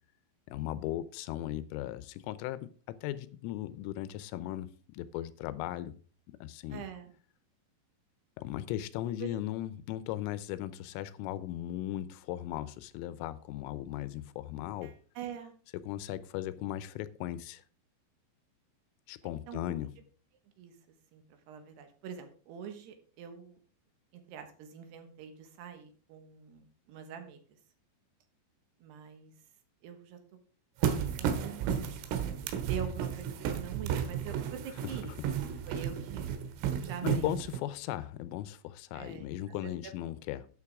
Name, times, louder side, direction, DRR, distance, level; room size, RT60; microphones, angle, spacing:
voice 1, 0.5-6.0 6.4-6.8 8.4-15.0 15.9-17.6 19.1-19.9 35.0-35.1 37.0-40.5, left 13 dB, 85° left, 3.2 m, -37 dB
voice 2, 6.7-7.1 9.2-9.3 14.8-15.5 19.5-19.6 20.6-20.7 21.1-23.6 24.1-27.4 28.8-29.3 29.8-30.4 31.2-31.7 32.7-35.1 35.7-36.3 36.8-37.3 38.9-39.9, right 8 dB, 70° right, 3.0 m, -44 dB
sound 1, 30.8-37.6, right 8 dB, 85° right, 3.8 m, -33 dB
11.5 x 9.2 x 3.6 m
omnidirectional pair, 5.9 m